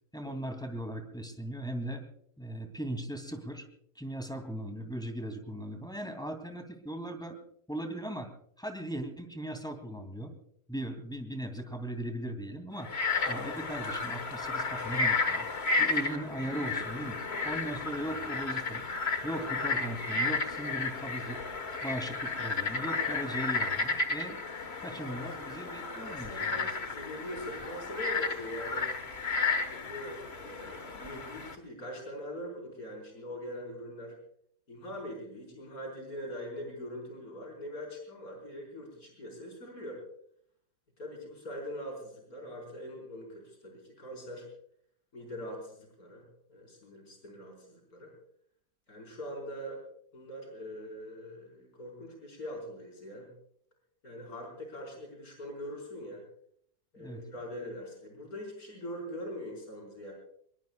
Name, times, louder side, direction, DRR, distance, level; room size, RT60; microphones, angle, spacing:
voice 1, 0.1-2.0 2.4-3.6 3.9-7.4 7.7-8.3 8.6-10.3 10.7-12.9 13.3-15.5 15.8-18.9 19.2-21.4 21.8-24.4 24.8-26.7 57.0-57.2, right 1 dB, ahead, 5 dB, 2.6 m, -38 dB
Frog, 12.8-31.5, left 4 dB, 40° left, 1.7 m, -33 dB
voice 2, 25.9-29.0 29.7-34.2 34.7-40.0 41.0-44.5 45.1-48.1 48.9-49.8 50.1-53.3 54.0-56.3 56.9-60.1, equal, 60° left, 0 dB, 5.3 m, -42 dB
25.0 x 22.5 x 2.4 m, 0.66 s
omnidirectional pair, 1.7 m